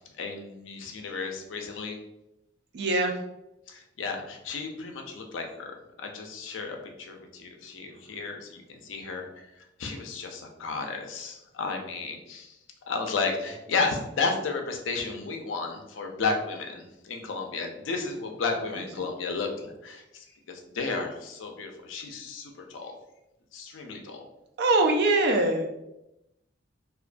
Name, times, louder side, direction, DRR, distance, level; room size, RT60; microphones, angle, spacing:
voice 1, 0.2-2.0 3.7-9.5 9.8-12.6 12.9-23.0 23.5-24.3, left 4 dB, 85° left, 3 dB, 0.5 m, -33 dB
voice 2, 2.7-3.1 24.6-25.7, right 2 dB, 60° right, 3 dB, 0.4 m, -22 dB
2.4 x 2.2 x 2.4 m, 0.90 s
head